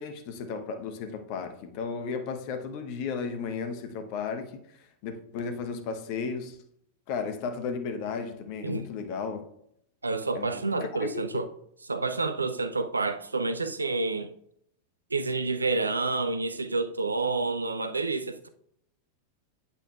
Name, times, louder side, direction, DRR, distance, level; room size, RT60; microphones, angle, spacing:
voice 1, 0.0-4.5 5.0-6.6 7.1-9.5 10.3-11.4, left 5 dB, 45° left, 1.0 m, -34 dB
voice 2, 10.0-11.5 11.9-14.3 15.1-18.5, right 3 dB, 80° right, 0.5 m, -29 dB
8.6 x 8.2 x 2.4 m
figure-of-eight pair, 90°, 0 cm